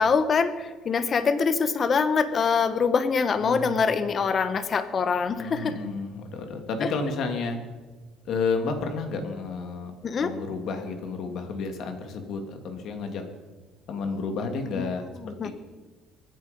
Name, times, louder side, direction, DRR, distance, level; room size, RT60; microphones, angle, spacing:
voice 1, 0.0-5.7 6.8-6.9 10.0-10.3 14.8-14.9 15.4-15.5, left 5 dB, 35° left, 11 dB, 1.0 m, -24 dB
voice 2, 3.4-3.9 5.3-7.6 8.2-9.9 10.2-13.2 13.9-15.0 15.4-15.5, left 4 dB, 55° left, 5 dB, 2.5 m, -31 dB
23.0 x 9.9 x 5.3 m, 1.3 s
cardioid pair, 140°, 0 cm